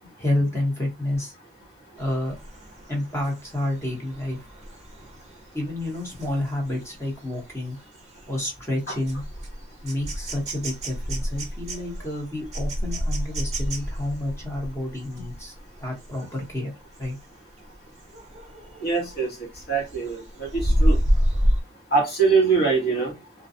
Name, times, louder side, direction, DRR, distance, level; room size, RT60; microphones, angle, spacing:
voice 1, 0.2-1.3 2.0-2.4 2.9-4.4 5.5-7.8 8.3-9.2 9.8-15.5 15.8-16.7 17.0-17.2, left 1 dB, 15° left, 1.0 m, -29 dB
sound 1, 2.0-16.5 16.9-17.2 17.6-19.2 19.6-21.6, equal, 35° right, 0.6 m, -29 dB
voice 2, 18.8-19.3 19.7-21.0 21.9-23.1, right 4 dB, 50° left, 1.3 m, -22 dB
2.4 x 2.3 x 2.7 m
head